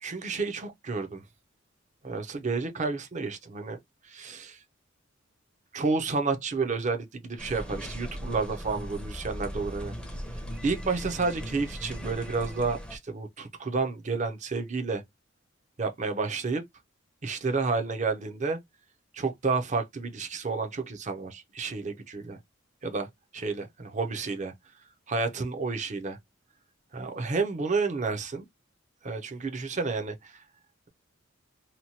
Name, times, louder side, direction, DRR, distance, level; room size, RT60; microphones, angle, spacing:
voice 1, 0.0-1.2 2.0-3.8 4.1-4.6 5.7-10.0 10.6-15.0 15.8-16.6 17.2-18.6 19.1-22.4 22.8-23.1 23.3-24.5 25.1-26.2 26.9-28.4 29.0-30.3, right 4 dB, 35° right, 0.6 m, -30 dB
sound 1, 7.4-13.0, equal, 5° left, 0.5 m, -38 dB
2.9 x 2.2 x 2.7 m
head